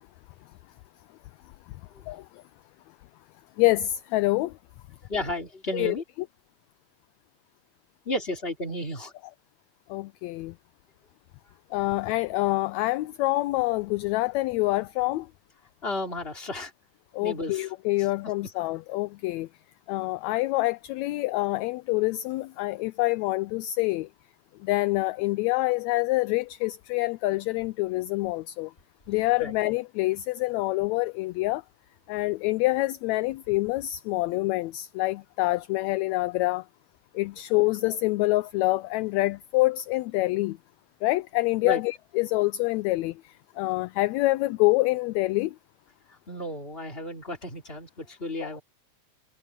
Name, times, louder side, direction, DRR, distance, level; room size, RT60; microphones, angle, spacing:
voice 1, 3.6-4.5 5.7-5.9 9.9-10.5 11.7-15.3 17.1-19.5 19.9-24.1 24.6-28.7 29.1-31.6 32.1-36.6 37.1-40.6 41.0-45.5 48.4-48.5, left 20 dB, 80° left, 1.6 m, -26 dB
voice 2, 5.1-6.0 8.1-9.1 15.8-16.7 17.2-17.7 29.4-29.5 41.6-41.8 46.3-48.6, left 1 dB, 20° left, 3.5 m, -33 dB
omnidirectional pair, 3.5 m